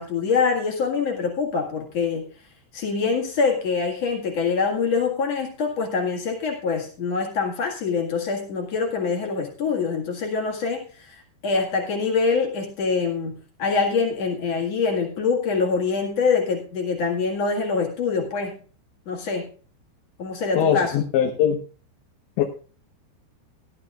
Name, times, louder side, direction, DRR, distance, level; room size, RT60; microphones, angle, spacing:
voice 1, 0.0-2.3 2.7-18.6 19.1-19.5 20.2-20.9, left 5 dB, 45° left, 0 dB, 2.4 m, -25 dB
voice 2, 20.6-21.6 22.4-22.5, left 9 dB, 80° left, 0 dB, 3.4 m, -21 dB
18.0 x 11.5 x 2.4 m, 0.38 s
omnidirectional pair, 5.2 m